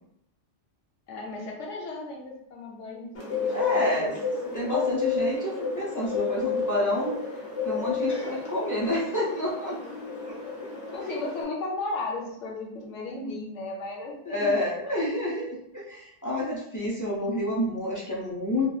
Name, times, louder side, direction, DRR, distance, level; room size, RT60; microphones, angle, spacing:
voice 1, 1.1-4.2 8.1-8.3 10.9-14.5 16.8-16.9, left 2 dB, 90° left, -1 dB, 1.0 m, -35 dB
Bird, 3.1-11.4, left 5 dB, 60° left, 1.1 m, -31 dB
voice 2, 3.5-4.1 4.4-7.2 7.6-9.8 10.2-10.3 14.3-18.7, left 1 dB, 25° left, -6 dB, 0.4 m, -29 dB
3.1 x 2.4 x 2.4 m, 0.76 s
omnidirectional pair, 1.2 m